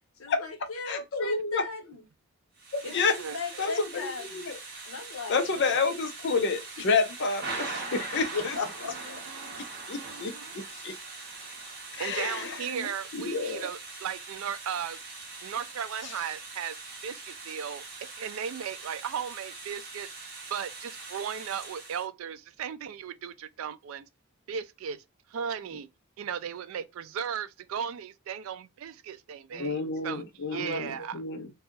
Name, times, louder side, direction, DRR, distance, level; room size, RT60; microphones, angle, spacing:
voice 1, 0.2-2.0 2.8-4.4 4.8-6.0 6.8-6.9 8.1-9.3 29.5-29.9 30.1-30.2 30.5-30.8 31.3-31.4, left 4 dB, 75° left, 0.9 m, -38 dB
voice 2, 0.8-1.6 2.7-3.2 3.6-4.6 5.3-8.6 9.9-10.9 11.9-13.7 29.6-31.5, left 4 dB, 55° left, 0.6 m, -30 dB
Thunder / Rain, 2.6-22.1, right 3 dB, 45° right, 1.0 m, -42 dB
voice 3, 2.9-3.7 9.3-9.6 9.9-10.6 12.0-15.0 15.4-16.8 17.0-17.8 18.2-24.1 24.5-25.0 25.3-25.9 26.2-30.2 30.5-31.2, right 8 dB, 70° right, 0.3 m, -36 dB
2.6 x 2.3 x 3.8 m
head